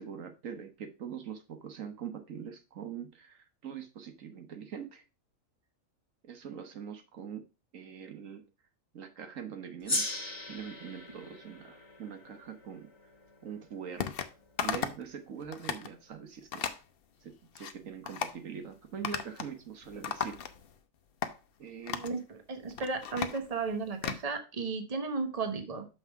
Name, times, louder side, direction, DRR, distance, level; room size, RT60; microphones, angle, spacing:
voice 1, 0.0-5.0 6.2-7.5 7.7-8.5 8.9-10.1 10.5-12.9 13.4-14.2 14.6-16.6 17.2-20.4 21.6-22.1, right 7 dB, 80° right, 8 dB, 1.5 m, -43 dB
Gong, 9.9-14.6, left 2 dB, 20° left, 1.6 m, -38 dB
sound 1, 14.0-14.3 14.6-15.1 15.4-15.9 16.5-16.8 17.3-17.7 18.1-18.4 19.0-19.6 19.8-20.8 21.2-21.3 21.9-22.2 22.6-24.2, left 7 dB, 50° left, 0.9 m, -36 dB
voice 2, 21.9-25.9, right 4 dB, 30° right, 7 dB, 1.1 m, -34 dB
6.4 x 5.8 x 4.6 m, 0.30 s
omnidirectional pair, 1.3 m